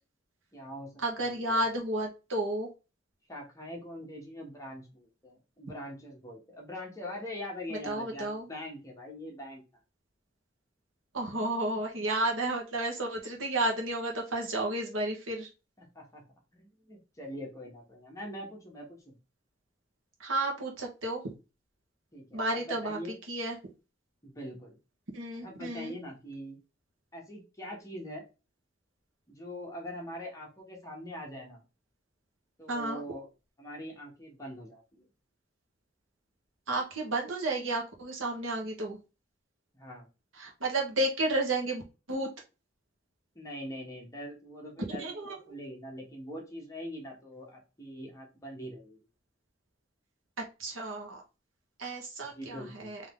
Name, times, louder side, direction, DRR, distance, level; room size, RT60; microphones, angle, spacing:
voice 1, 0.5-1.6 3.3-9.6 15.8-16.2 16.5-19.2 22.1-23.1 24.2-24.8 25.4-26.6 27.1-28.2 29.3-31.6 32.6-33.3 33.6-35.1 39.7-40.1 43.3-49.0 52.2-52.9, equal, 15° left, -1 dB, 1.3 m, -43 dB
voice 2, 1.0-2.7 7.8-8.5 11.1-15.5 20.2-21.2 22.3-23.0 23.3-23.6 25.1-25.9 32.7-33.0 36.7-39.0 40.4-41.8 42.1-42.3 45.0-45.5 50.6-51.2 51.8-53.0, right 1 dB, 80° right, 0 dB, 1.3 m, -32 dB
3.8 x 3.1 x 3.6 m, 0.30 s
head